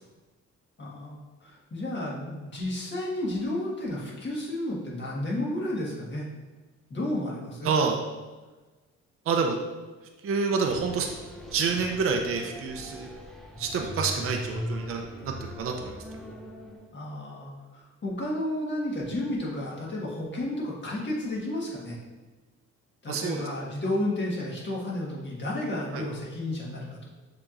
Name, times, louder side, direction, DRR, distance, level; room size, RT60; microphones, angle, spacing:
voice 1, 0.8-6.3 6.9-7.7 16.9-22.0 23.0-27.1, left 1 dB, 35° left, -4 dB, 1.5 m, -32 dB
voice 2, 7.6-8.0 9.3-9.6 10.2-11.1 11.5-13.1 13.6-16.0 23.1-23.4 25.9-26.0, right 5 dB, 45° right, 2 dB, 0.5 m, -28 dB
sound 1, 10.7-16.9, equal, ahead, 0.5 m, -39 dB
6.9 x 2.9 x 2.5 m, 1.2 s
cardioid pair, 90°, 30 cm